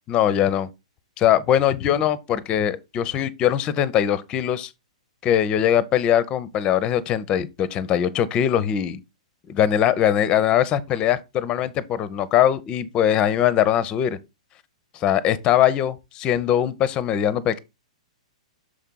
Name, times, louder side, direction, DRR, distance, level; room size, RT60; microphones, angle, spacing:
voice 1, 0.1-0.7 1.2-4.7 5.2-9.0 9.5-14.2 14.9-17.6, left 10 dB, 25° left, 0.6 m, -21 dB
6.4 x 4.5 x 3.7 m
figure-of-eight pair, 110°, 4 cm